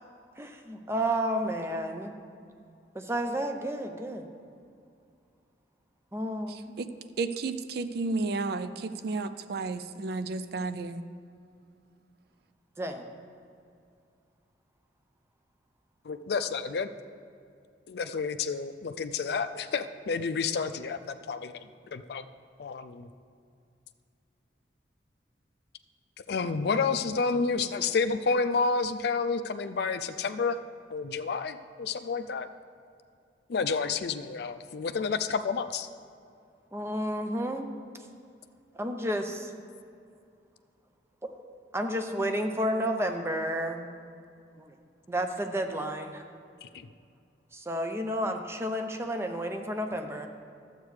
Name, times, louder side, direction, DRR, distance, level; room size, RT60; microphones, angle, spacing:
voice 1, 0.4-2.1 2.9-4.3 6.1-6.8 12.8-13.0 36.7-37.7 38.8-39.5 41.2-43.9 44.6-44.8 45.1-46.2 47.5-50.3, equal, 15° right, 5 dB, 0.5 m, -31 dB
voice 2, 6.5-6.9 7.2-11.0, right 3 dB, 60° right, 11 dB, 0.4 m, -32 dB
voice 3, 16.0-16.9 17.9-21.5 21.9-22.3 22.6-23.1 26.2-30.6 30.9-32.5 33.5-35.9 42.2-42.3 46.6-46.7 48.2-48.3, left 4 dB, 60° left, 9 dB, 0.4 m, -30 dB
12.0 x 8.0 x 3.2 m, 2.4 s
head